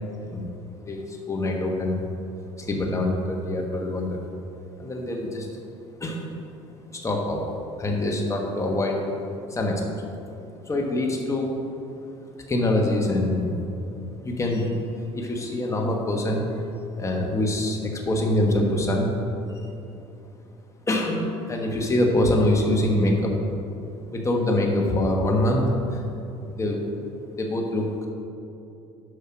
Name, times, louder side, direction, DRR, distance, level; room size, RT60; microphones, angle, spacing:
voice 1, 0.8-2.0 2.6-4.2 4.8-5.5 6.0-6.3 7.0-9.0 9.5-10.1 10.7-11.5 12.5-13.6 14.2-14.8 15.1-16.4 16.9-19.1 19.5-19.7 20.9-23.3 24.1-26.0 26.4-26.8 27.4-27.9, left 1 dB, 25° left, 0 dB, 1.4 m, -24 dB
8.1 x 5.6 x 6.0 m, 2.7 s
supercardioid pair, 95°, 13 cm